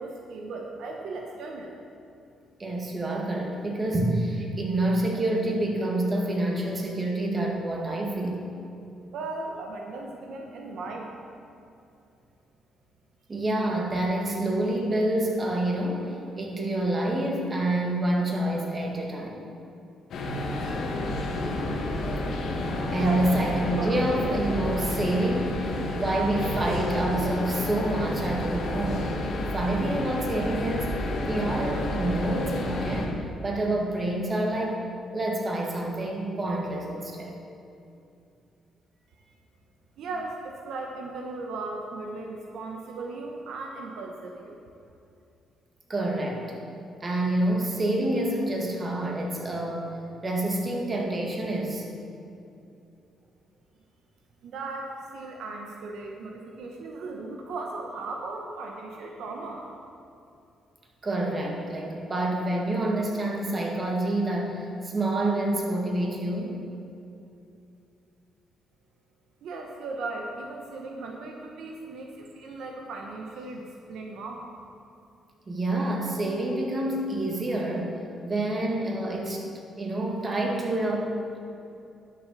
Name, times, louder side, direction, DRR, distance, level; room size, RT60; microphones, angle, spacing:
voice 1, 0.0-1.7 9.1-11.4 22.9-23.2 23.8-23.9 40.0-44.6 54.4-59.7 69.4-74.5, right 3 dB, 75° right, 1 dB, 1.0 m, -37 dB
voice 2, 2.6-8.4 13.3-19.4 22.9-25.6 26.0-29.2 29.5-30.9 31.2-34.8 35.1-37.3 45.9-46.5 47.0-50.0 50.2-51.9 61.0-66.5 75.5-78.0 78.2-79.5 79.8-81.4, right 1 dB, 30° right, -1 dB, 2.2 m, -27 dB
sound 1, 20.1-33.1, left 1 dB, 70° left, 1.8 m, -30 dB
11.0 x 6.9 x 6.6 m, 2.7 s
cardioid pair, 90°, 0 cm